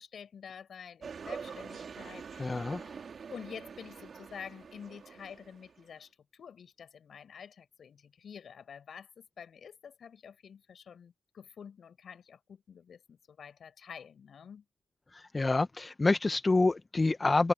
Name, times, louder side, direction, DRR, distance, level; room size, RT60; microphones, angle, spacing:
voice 1, 0.0-2.9 3.3-14.6, left 7 dB, 50° left, 6.1 m, -49 dB
sound 1, 1.0-5.9, right 6 dB, 45° right, 2.6 m, -45 dB
voice 2, 2.4-2.9 15.1-17.5, left 3 dB, 20° left, 0.7 m, -27 dB
cardioid pair, 90°, 0 cm